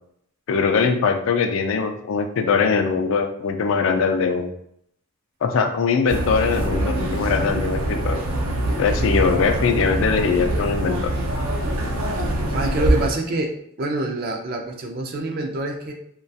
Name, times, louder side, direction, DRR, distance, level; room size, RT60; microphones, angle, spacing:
voice 1, 0.5-4.5 5.4-8.2 8.8-11.1, left 5 dB, 65° left, 5 dB, 0.3 m, -21 dB
sound 1, 6.1-13.1, right 1 dB, 85° right, 0.6 m, -24 dB
voice 2, 12.2-13.5 13.8-15.9, right 2 dB, 45° right, 3 dB, 0.4 m, -26 dB
2.3 x 2.2 x 2.6 m, 0.69 s
head